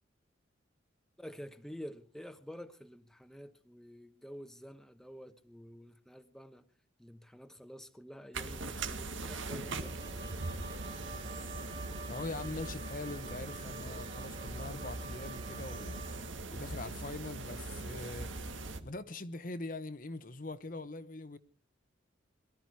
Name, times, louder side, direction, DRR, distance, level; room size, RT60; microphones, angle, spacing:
voice 1, 1.2-6.6 7.0-10.4, equal, 5° left, 1.0 m, -49 dB
sound 1, 8.3-18.8, right 3 dB, 75° right, 2.0 m, -41 dB
Wind instrument woodwind instrument, 9.6-16.3, right 3 dB, 25° right, 1.7 m, -50 dB
voice 2, 12.1-16.0 16.5-21.4, left 2 dB, 45° left, 1.0 m, -42 dB
22.5 x 13.5 x 4.8 m
head